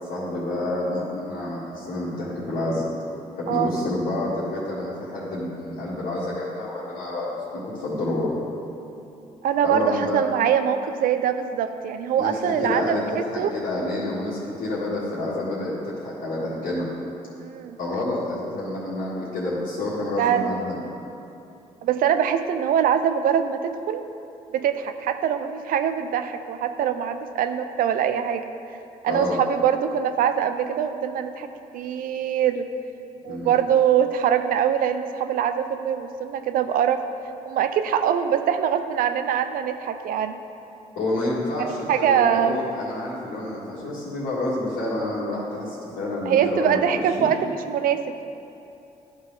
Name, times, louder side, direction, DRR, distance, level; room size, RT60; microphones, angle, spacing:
voice 1, 0.1-2.9 3.3-8.4 9.6-10.2 12.2-13.0 13.3-16.9 17.8-20.9 29.1-29.4 33.2-33.5 40.9-47.3, left 1 dB, 70° left, -11 dB, 1.6 m, -28 dB
voice 2, 9.4-13.5 17.4-17.8 20.2-20.6 21.8-24.0 24.5-28.4 29.0-32.7 33.2-37.0 37.4-40.3 41.6-42.6 46.3-48.2, right 9 dB, 70° right, 9 dB, 0.5 m, -23 dB
11.0 x 3.9 x 3.9 m, 2.8 s
supercardioid pair, 55°, 15 cm